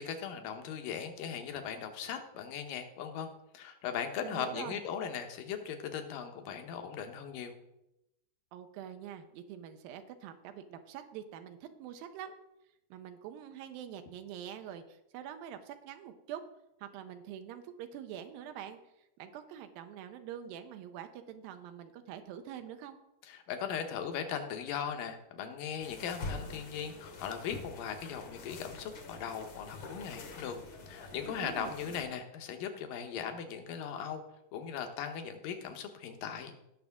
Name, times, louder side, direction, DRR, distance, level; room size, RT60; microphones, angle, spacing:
voice 1, 0.0-3.3 3.5-7.5 23.3-30.6 30.9-34.2 34.5-36.5, left 7 dB, 75° left, 6 dB, 2.6 m, -38 dB
voice 2, 4.2-4.8 8.5-12.4 12.9-16.4 16.8-23.0 31.2-31.7, right 10 dB, 85° right, 7 dB, 2.5 m, -45 dB
sound 1, 25.8-32.1, left 3 dB, 60° left, 1.4 m, -46 dB
18.0 x 6.1 x 3.6 m, 0.88 s
omnidirectional pair, 4.0 m